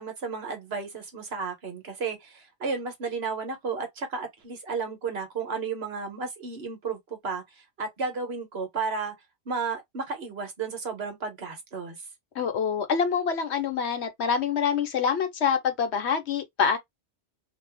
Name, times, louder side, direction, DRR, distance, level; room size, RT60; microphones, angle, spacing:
voice 1, 0.0-7.4 7.8-9.1 9.5-12.0, right 4 dB, 60° right, 1.2 m, -33 dB
voice 2, 12.3-16.8, left 6 dB, 65° left, 1.0 m, -26 dB
2.7 x 2.3 x 3.3 m
omnidirectional pair, 1.2 m